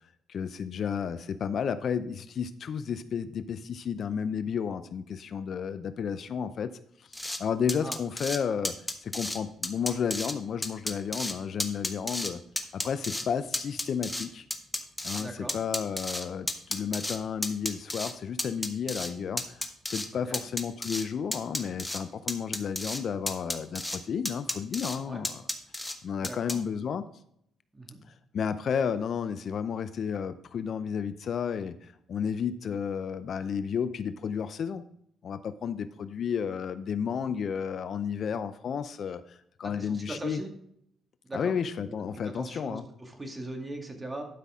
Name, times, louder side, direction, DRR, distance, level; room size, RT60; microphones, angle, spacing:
voice 1, 0.3-8.7 9.0-12.4 12.7-14.5 15.0-25.4 26.0-27.0 28.3-34.8 35.2-40.4 41.3-42.8, left 7 dB, 60° left, 13 dB, 0.6 m, -32 dB
sound 1, 7.1-7.4 7.7-8.4 8.6-9.4 9.6-10.3 10.6-11.3 11.6-12.3 12.6-13.2 13.5-15.2 15.5-17.2 17.4-18.1 18.4-19.1 19.4-20.1 20.3-21.0 21.3-22.0 22.3-23.0 23.3-24.0 24.2-25.0 25.2-25.9 26.2-26.5, left 1 dB, 10° left, 1.1 m, -32 dB
voice 2, 15.2-15.6 20.1-20.4 25.0-25.2 26.2-26.7 27.7-28.0 39.6-40.5 41.3-41.6 41.8-44.2, right 1 dB, 20° right, 4 dB, 2.1 m, -40 dB
12.0 x 5.8 x 3.7 m, 0.71 s
cardioid pair, 90°, 0 cm